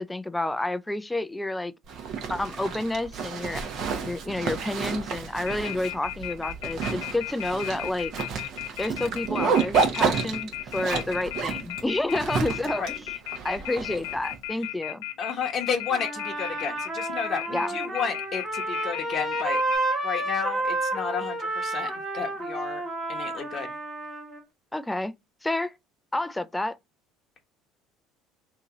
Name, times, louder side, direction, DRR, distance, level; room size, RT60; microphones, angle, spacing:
voice 1, 0.0-1.7 2.3-3.6 4.0-8.1 8.8-13.1 13.4-15.0 17.5-17.8 24.7-25.1 25.4-25.7 26.1-26.8, left 2 dB, 10° left, 0.4 m, -29 dB
Zipper (clothing), 1.9-14.4, right 5 dB, 55° right, 1.0 m, -30 dB
Telephone, 5.5-19.8, left 17 dB, 90° left, 0.6 m, -35 dB
voice 2, 15.2-19.6 20.0-22.8 23.1-23.7, left 6 dB, 45° left, 0.9 m, -32 dB
Trumpet, 15.9-24.4, right 2 dB, 30° right, 1.2 m, -31 dB
2.9 x 2.8 x 3.6 m
supercardioid pair, 90°, 0 cm